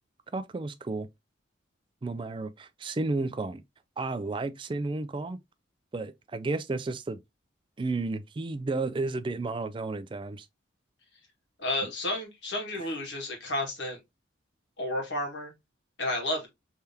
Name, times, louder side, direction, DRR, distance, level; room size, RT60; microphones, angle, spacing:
voice 1, 0.3-1.1 2.0-3.6 4.0-5.4 5.9-7.2 7.8-10.5 11.8-11.9 12.8-12.9, right 3 dB, 25° right, 0.3 m, -32 dB
voice 2, 11.6-14.0 14.8-15.5 16.0-16.5, left 1 dB, 70° left, 1.8 m, -31 dB
3.4 x 3.4 x 2.8 m
head